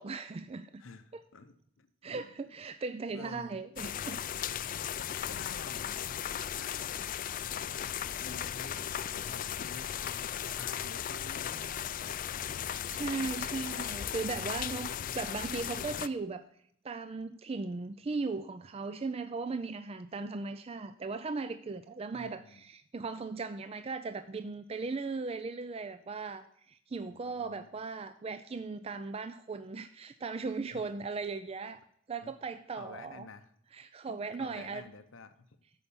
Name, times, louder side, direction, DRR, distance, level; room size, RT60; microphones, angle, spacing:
voice 1, 0.0-0.8 2.0-4.2 12.6-16.4 16.8-31.8 32.1-33.3 33.7-34.8, right 4 dB, 30° right, 11 dB, 0.4 m, -38 dB
voice 2, 0.8-2.4 3.1-3.7 4.7-6.1 6.5-7.0 7.7-8.8 9.3-12.0 13.0-13.5 15.0-15.2 22.1-22.6 27.1-27.7 30.7-30.8 32.2-32.3 32.8-33.5 34.1-35.6, left 3 dB, 70° left, 10 dB, 0.7 m, -51 dB
sound 1, 3.8-16.1, left 9 dB, 40° left, 0.3 m, -36 dB
13.0 x 5.6 x 7.0 m, 0.69 s
head